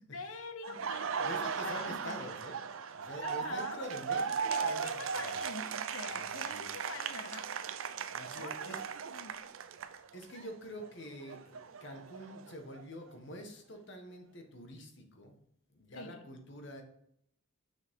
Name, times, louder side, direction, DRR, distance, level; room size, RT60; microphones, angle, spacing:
voice 1, 0.0-2.3 3.2-3.9 4.5-7.5 8.4-8.7 9.1-9.4 15.9-16.3, left 3 dB, 80° left, 9 dB, 1.0 m, -45 dB
Laughter, 0.6-10.5 10.8-12.8, right 6 dB, 70° right, 0.5 m, -38 dB
voice 2, 0.7-2.6 2.9-5.4 6.1-6.7 8.1-8.8 10.1-15.4 15.7-16.8, equal, 55° left, 4 dB, 1.5 m, -46 dB
7.2 x 6.3 x 3.7 m, 0.73 s
head